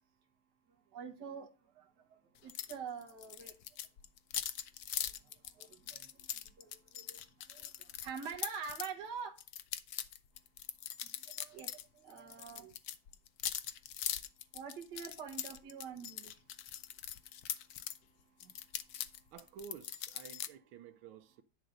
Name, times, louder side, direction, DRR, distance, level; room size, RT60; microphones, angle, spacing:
voice 1, 0.9-1.5 2.4-3.5 5.6-5.7 5.9-6.0 6.6-7.2 7.5-7.7 8.0-9.3 11.4-11.7 12.0-12.7 14.5-16.2 18.4-18.5, right 6 dB, 55° right, 1.7 m, -44 dB
sound 1, 2.5-2.8 3.0-8.9 9.4-11.8 12.1-18.0 18.4-20.5, left 10 dB, 70° left, 0.9 m, -42 dB
voice 2, 19.3-21.4, right 7 dB, 80° right, 1.6 m, -52 dB
10.5 x 4.0 x 6.4 m
omnidirectional pair, 2.3 m